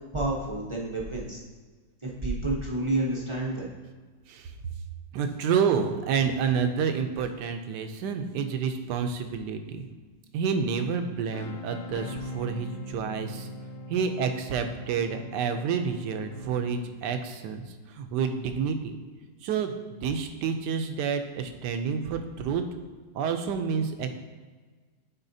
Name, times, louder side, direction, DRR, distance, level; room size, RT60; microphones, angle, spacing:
voice 1, 0.1-1.4 2.0-3.7, right 2 dB, 35° right, -3 dB, 0.5 m, -29 dB
voice 2, 5.1-9.9 10.3-13.5 13.9-17.6 18.0-19.0 19.4-22.6 23.1-24.1, right 6 dB, 75° right, 7 dB, 1.2 m, -29 dB
sound 1, 11.3-17.2, equal, 75° left, 1.2 m, -41 dB
9.7 x 4.4 x 2.7 m, 1.4 s
omnidirectional pair, 1.9 m